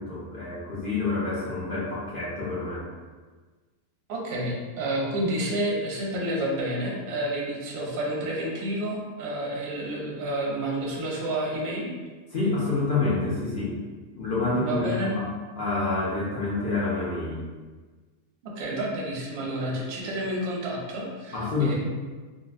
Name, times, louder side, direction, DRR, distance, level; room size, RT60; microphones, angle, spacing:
voice 1, 0.0-2.8 12.3-13.7 14.2-15.3 15.6-17.4 21.3-21.8, left 3 dB, 55° left, -8 dB, 0.6 m, -27 dB
voice 2, 4.1-11.9 14.6-15.1 18.4-21.8, right 1 dB, 55° right, -3 dB, 0.8 m, -30 dB
3.7 x 2.1 x 2.4 m, 1.4 s
omnidirectional pair, 1.6 m